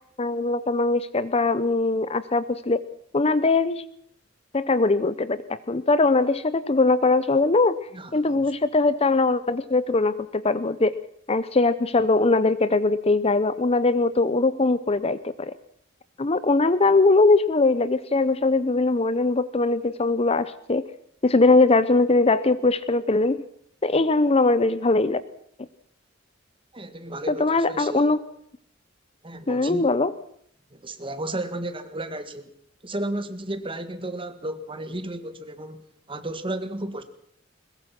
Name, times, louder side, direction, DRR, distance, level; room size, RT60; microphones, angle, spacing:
voice 1, 0.2-2.8 3.1-3.8 4.5-7.8 8.1-11.0 11.3-15.5 16.2-20.8 21.2-23.4 23.8-25.2 27.3-28.2 29.5-30.1, left 3 dB, 30° left, 15 dB, 0.7 m, -21 dB
voice 2, 7.9-8.5 26.7-28.0 29.2-29.9 30.7-32.5 32.8-37.0, right 1 dB, 25° right, 9 dB, 1.9 m, -33 dB
21.5 x 21.0 x 6.0 m, 0.68 s
head